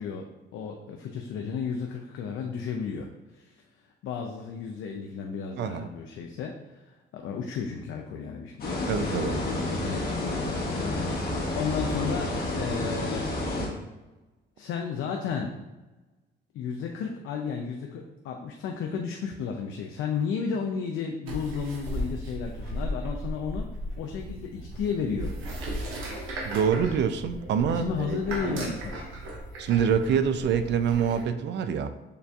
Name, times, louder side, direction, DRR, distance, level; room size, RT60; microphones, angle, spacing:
voice 1, 0.0-3.1 3.3-3.6 4.0-13.3 14.6-15.6 16.5-23.7 24.0-25.3 27.7-29.1, left 6 dB, 75° left, 2 dB, 0.5 m, -33 dB
voice 2, 5.6-5.9 8.9-9.4 26.4-28.2 28.4-28.7 29.6-31.9, right 7 dB, 60° right, 10 dB, 0.4 m, -26 dB
sound 1, 8.6-13.7, left 2 dB, 50° left, 1.1 m, -30 dB
sound 2, 21.3-31.2, equal, 90° right, 0.9 m, -36 dB
6.6 x 2.6 x 2.3 m, 1.1 s
cardioid pair, 90°, 20 cm